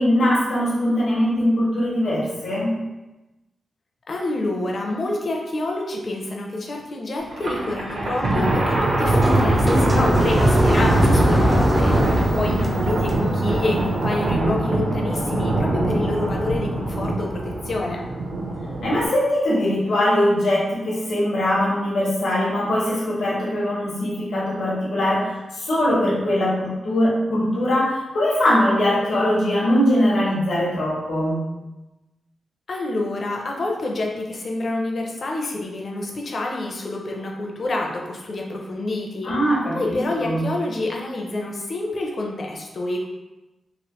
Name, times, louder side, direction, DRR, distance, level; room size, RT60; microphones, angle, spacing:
voice 1, 0.0-2.8 18.8-25.3 25.5-31.4 39.2-40.5, left 1 dB, 80° left, -6 dB, 1.0 m, -21 dB
voice 2, 4.1-18.1 32.7-39.3 39.7-43.1, left 2 dB, 45° left, 0 dB, 0.5 m, -28 dB
Thunder, 7.3-19.1, right 1 dB, 60° right, 0.7 m, -23 dB
sound 1, 8.4-14.3, right 1 dB, 10° right, 0.4 m, -22 dB
3.1 x 2.5 x 3.0 m, 1.0 s
wide cardioid pair, 130°, 0 cm